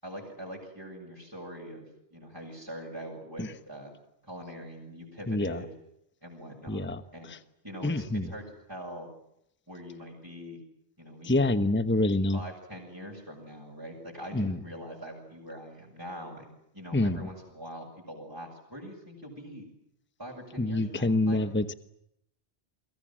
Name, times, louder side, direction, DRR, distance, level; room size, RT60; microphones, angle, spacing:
voice 1, 0.0-1.9 2.1-3.9 4.2-5.7 6.2-7.3 7.6-9.1 9.7-10.6 11.0-11.5 12.3-19.7 20.2-21.4, equal, 20° right, -2 dB, 7.8 m, -43 dB
voice 2, 5.3-5.6 6.7-7.0 7.8-8.3 11.3-12.4 14.3-14.6 16.9-17.2 20.6-21.7, left 2 dB, 10° left, 12 dB, 1.1 m, -26 dB
30.0 x 24.0 x 7.6 m, 0.78 s
omnidirectional pair, 1.1 m